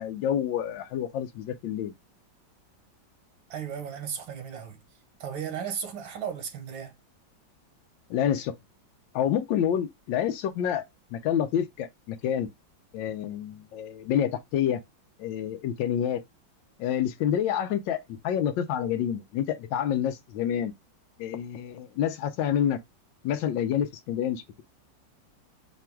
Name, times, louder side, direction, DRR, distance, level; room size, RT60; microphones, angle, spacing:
voice 1, 0.0-1.9 8.1-8.5 9.1-10.8 11.1-12.5 12.9-14.8 15.2-16.2 16.8-20.7 21.2-22.8 23.2-24.6, left 9 dB, 80° left, 1.3 m, -28 dB
voice 2, 3.5-4.8 5.2-7.0, right 8 dB, 80° right, 1.7 m, -35 dB
5.1 x 2.3 x 4.4 m
omnidirectional pair, 2.0 m